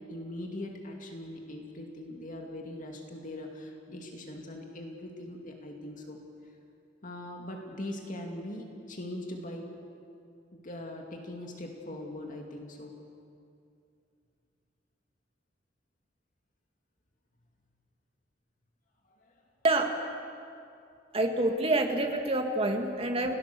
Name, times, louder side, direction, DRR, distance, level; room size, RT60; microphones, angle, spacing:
voice 1, 0.1-6.2 7.0-9.7 10.5-13.0 19.2-19.3 23.2-23.3, left 1 dB, 45° left, 1 dB, 2.4 m, -41 dB
voice 2, 21.1-23.3, right 2 dB, 30° right, 3 dB, 2.0 m, -27 dB
30.0 x 18.0 x 6.9 m, 2.5 s
head